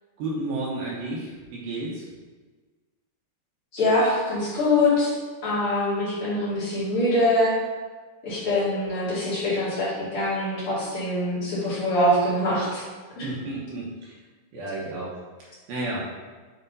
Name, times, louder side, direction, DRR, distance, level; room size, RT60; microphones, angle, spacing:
voice 1, 0.2-2.0 13.2-14.2 14.5-16.2, right 2 dB, 70° right, -5 dB, 2.6 m, -32 dB
voice 2, 3.7-5.1 5.4-7.5 8.2-12.8 13.2-13.3, left 1 dB, 40° left, -10 dB, 2.4 m, -24 dB
7.7 x 5.1 x 2.7 m, 1.4 s
omnidirectional pair, 4.7 m